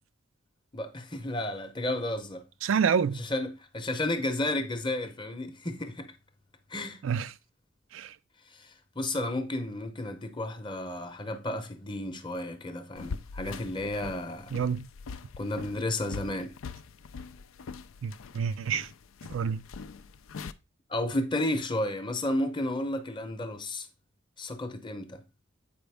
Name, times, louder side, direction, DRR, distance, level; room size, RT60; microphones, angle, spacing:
voice 1, 0.7-2.4 3.1-6.1 6.7-7.0 8.5-8.7 9.0-14.5 15.4-16.5 20.9-23.9 24.4-25.2, left 1 dB, 25° left, 0.8 m, -32 dB
voice 2, 2.6-3.2 7.0-7.3 7.9-8.1 14.5-14.9 18.0-18.9 19.3-19.6, right 7 dB, 75° right, 0.4 m, -28 dB
sound 1, 13.0-20.5, left 5 dB, 85° left, 0.4 m, -43 dB
7.8 x 5.1 x 3.4 m
head